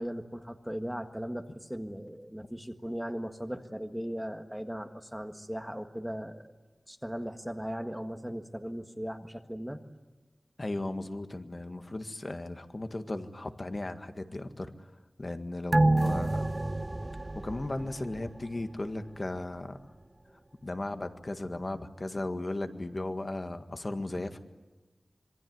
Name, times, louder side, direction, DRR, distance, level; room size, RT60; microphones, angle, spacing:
voice 1, 0.0-6.4 6.9-9.8, equal, 5° right, 6 dB, 1.7 m, -38 dB
voice 2, 10.6-14.9 15.2-16.5 17.3-19.8 20.6-24.4, left 2 dB, 40° left, 7 dB, 1.8 m, -36 dB
sound 1, 15.7-18.6 19.0-19.1, right 2 dB, 30° right, 0.8 m, -28 dB
26.5 x 22.5 x 9.6 m, 1.2 s
wide cardioid pair, 90°, 0 cm